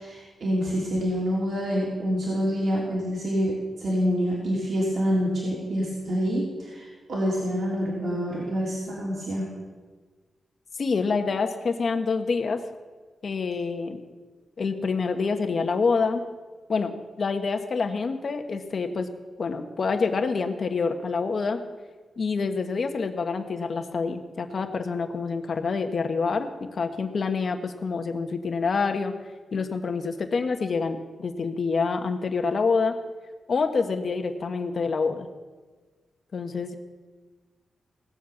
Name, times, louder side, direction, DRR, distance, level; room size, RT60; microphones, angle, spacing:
voice 1, 0.0-9.5, equal, 65° right, -5 dB, 3.6 m, -27 dB
voice 2, 10.8-12.6 13.2-14.0 14.6-16.3 16.7-16.9 17.2-19.1 19.4-21.6 22.2-29.1 29.5-33.0 33.5-35.3 36.3-36.7, left 4 dB, 55° left, 6 dB, 1.3 m, -27 dB
18.0 x 7.9 x 7.2 m, 1.4 s
cardioid pair, 95°, 0 cm